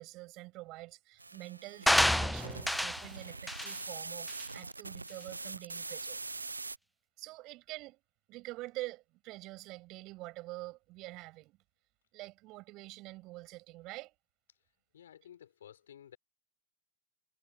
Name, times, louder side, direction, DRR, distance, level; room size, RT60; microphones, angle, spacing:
voice 1, 0.0-6.2 7.2-8.0 8.3-11.6 12.1-14.1, right 20 dB, 40° right, 7.8 m, -46 dB
sound 1, 1.2-6.8, right 3 dB, 80° right, 0.6 m, -43 dB
sound 2, 1.9-3.1 3.5-3.7 4.3-4.4, left 1 dB, ahead, 0.3 m, -28 dB
voice 2, 14.9-16.2, left 10 dB, 65° left, 6.2 m, -54 dB
figure-of-eight pair, 90°, 0 cm